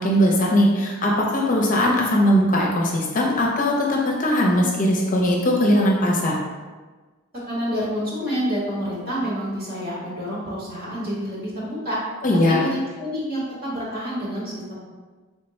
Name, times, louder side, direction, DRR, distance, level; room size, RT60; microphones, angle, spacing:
voice 1, 0.0-6.4 12.2-12.6, equal, 40° left, -2 dB, 0.6 m, -20 dB
voice 2, 7.5-12.0 12.4-14.8, equal, 45° right, -7 dB, 1.3 m, -28 dB
3.4 x 2.2 x 4.0 m, 1.3 s
head